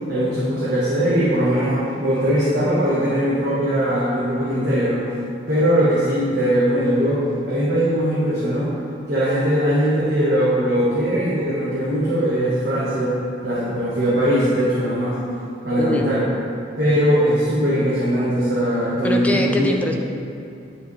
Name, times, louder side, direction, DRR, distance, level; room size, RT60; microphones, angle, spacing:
voice 1, 0.1-5.0 5.5-8.7 9.1-13.2 13.4-15.1 15.6-16.2 16.8-19.8, equal, 60° right, -10 dB, 1.4 m, -20 dB
voice 2, 15.8-16.1 19.0-19.9, left 1 dB, 10° left, 2 dB, 0.4 m, -23 dB
10.5 x 4.9 x 3.2 m, 2.7 s
head